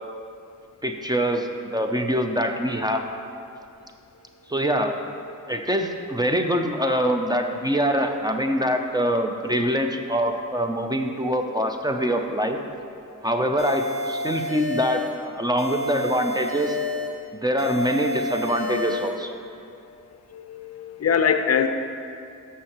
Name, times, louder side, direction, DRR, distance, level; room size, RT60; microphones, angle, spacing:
voice 1, 0.8-3.0 4.5-5.0 5.5-12.6 13.2-16.8 17.3-19.3, equal, 15° right, 4 dB, 0.5 m, -24 dB
sound 1, 13.6-15.2 15.6-17.2 17.6-19.2, left 2 dB, 40° right, 1.1 m, -30 dB
voice 2, 20.3-21.7, left 7 dB, 50° left, 8 dB, 0.5 m, -22 dB
13.5 x 5.6 x 3.0 m, 2.6 s
wide cardioid pair, 100°, 32 cm